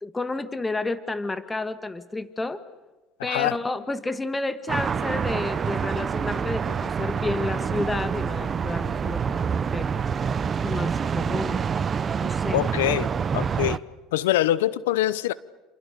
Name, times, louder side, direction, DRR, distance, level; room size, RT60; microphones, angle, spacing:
voice 1, 0.0-2.6 3.2-9.9 10.6-11.7 12.2-12.6, left 2 dB, 15° left, 1.7 m, -31 dB
voice 2, 3.2-3.6 12.5-13.8 14.1-15.3, left 14 dB, 85° left, 0.9 m, -24 dB
sound 1, 4.7-13.8, right 6 dB, 35° right, 0.9 m, -27 dB
28.0 x 28.0 x 6.9 m
supercardioid pair, 90°, 0 cm